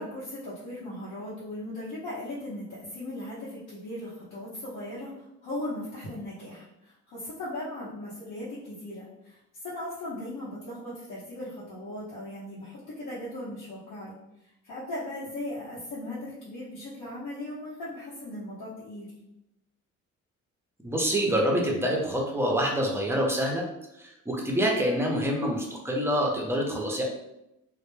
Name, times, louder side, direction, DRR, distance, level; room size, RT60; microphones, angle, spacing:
voice 1, 0.0-9.4 9.6-14.2 14.6-19.1, left 1 dB, 80° left, -8 dB, 0.8 m, -38 dB
voice 2, 20.8-23.6 23.9-27.0, equal, 10° right, -1 dB, 0.5 m, -26 dB
2.1 x 2.1 x 3.1 m, 0.85 s
cardioid pair, 90°, 30 cm